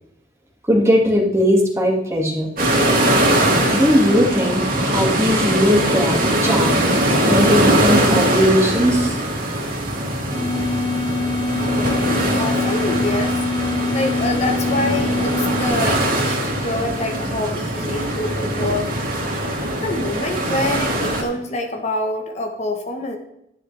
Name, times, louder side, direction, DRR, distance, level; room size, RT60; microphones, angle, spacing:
voice 1, 0.7-2.5 3.7-4.6 4.9-6.8 7.3-9.6, equal, 15° right, -1 dB, 1.9 m, -18 dB
sound 1, 2.6-21.2, right 1 dB, 50° right, 2.6 m, -21 dB
sound 2, 10.3-15.7, left 3 dB, 15° left, 2.3 m, -24 dB
voice 2, 11.8-13.4 13.9-18.9 19.8-23.2, left 2 dB, 35° left, 3 dB, 1.1 m, -26 dB
11.0 x 10.5 x 3.3 m, 0.80 s
head